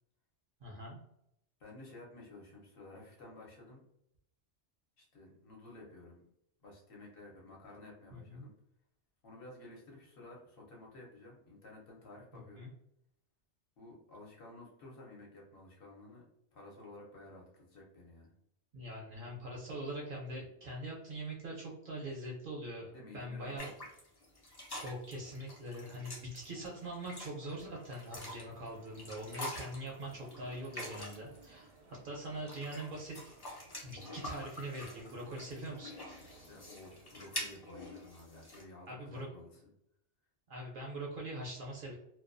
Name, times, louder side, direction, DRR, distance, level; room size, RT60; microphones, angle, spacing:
voice 1, 0.6-1.0 8.1-8.5 12.3-12.7 18.7-23.7 24.7-33.2 33.8-35.9 38.9-39.3 40.5-41.9, right 1 dB, 60° right, -2 dB, 0.6 m, -43 dB
voice 2, 1.6-3.8 5.0-6.2 6.6-8.5 9.2-12.7 13.8-16.2 16.5-18.3 22.9-23.6 25.8-26.0 36.4-39.7, left 2 dB, 60° left, -2 dB, 0.8 m, -53 dB
sound 1, 23.6-31.4 32.2-38.6, left 1 dB, 35° left, 0.4 m, -47 dB
sound 2, 28.4-37.6, right 3 dB, 80° right, 0.9 m, -61 dB
2.3 x 2.2 x 2.4 m, 0.76 s
omnidirectional pair, 1.2 m